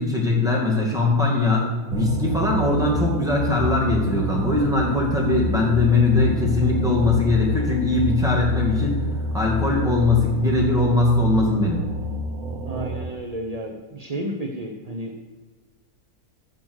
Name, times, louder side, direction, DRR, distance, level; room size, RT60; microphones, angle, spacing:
voice 1, 0.0-9.0 9.3-11.8, left 3 dB, ahead, -3 dB, 2.2 m, -21 dB
sound 1, 1.9-13.2, equal, 65° right, 1.5 m, -28 dB
voice 2, 12.6-15.1, right 1 dB, 40° right, 1 dB, 0.6 m, -32 dB
10.5 x 6.1 x 6.3 m, 1.3 s
omnidirectional pair, 1.6 m